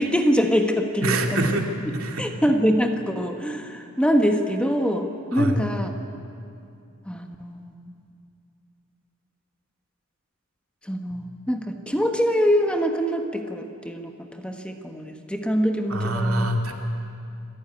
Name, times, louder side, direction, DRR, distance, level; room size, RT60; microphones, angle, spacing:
voice 1, 0.0-1.6 2.2-5.9 7.1-7.9 10.9-14.1 14.4-16.5, equal, 5° left, 4 dB, 1.2 m, -24 dB
voice 2, 1.0-2.3 5.3-5.6 11.1-11.3 15.9-16.7, right 1 dB, 85° right, 3 dB, 2.5 m, -25 dB
26.5 x 14.5 x 9.7 m, 2.5 s
head